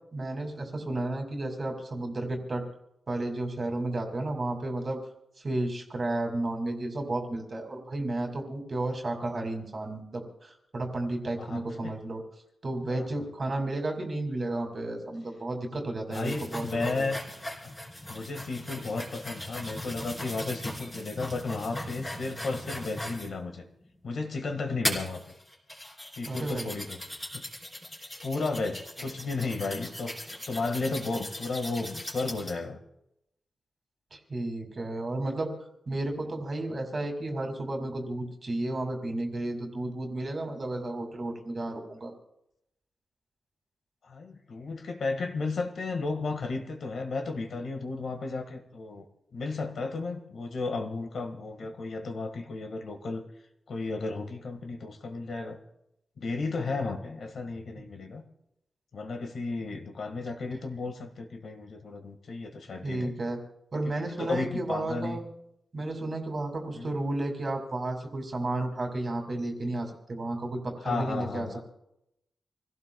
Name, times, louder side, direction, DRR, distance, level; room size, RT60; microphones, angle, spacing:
voice 1, 0.1-2.6 3.1-5.0 5.4-12.2 12.6-17.0 26.2-26.7 34.1-35.5 35.9-42.1 62.8-63.4 63.7-65.2 65.7-71.6, right 2 dB, 30° right, 3 dB, 2.4 m, -32 dB
voice 2, 11.4-12.0 12.9-13.1 16.1-17.2 17.6-17.7 18.1-23.6 24.0-25.2 26.2-27.0 27.3-27.5 28.0-32.8 44.0-49.0 49.3-53.2 53.7-55.6 56.2-58.2 58.9-63.1 64.2-65.2 66.7-67.0 70.8-71.6, left 3 dB, 55° left, 5 dB, 1.8 m, -34 dB
sound 1, 16.1-23.3 23.9-24.0 24.8-32.5, left 1 dB, 15° left, 3.2 m, -39 dB
27.5 x 17.0 x 2.3 m, 0.82 s
wide cardioid pair, 170°, 0 cm